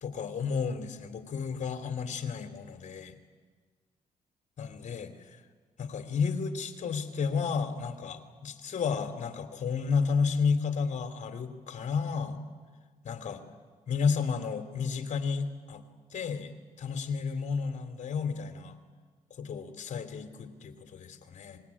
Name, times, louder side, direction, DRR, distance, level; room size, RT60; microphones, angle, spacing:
voice 1, 0.0-3.1 4.6-5.4 5.8-12.4 13.0-13.4 13.9-15.8 16.1-16.5 16.8-18.8 19.4-21.6, left 5 dB, 60° left, 8 dB, 3.1 m, -32 dB
24.5 x 21.5 x 9.9 m, 1.5 s
supercardioid pair, 60°, 14 cm